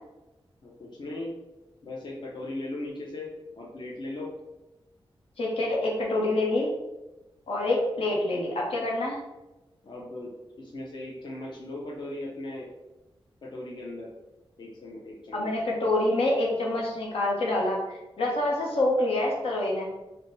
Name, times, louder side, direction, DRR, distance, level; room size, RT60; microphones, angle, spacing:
voice 1, 0.6-1.3 1.8-3.3 3.6-4.3 9.8-10.3 10.6-12.7 13.4-14.1 14.6-15.5, left 1 dB, 50° left, -3 dB, 0.6 m, -38 dB
voice 2, 5.4-6.7 7.5-9.2 15.3-19.9, left 1 dB, 85° left, -3 dB, 0.9 m, -26 dB
3.4 x 2.2 x 3.9 m, 1.0 s
wide cardioid pair, 140°, 10 cm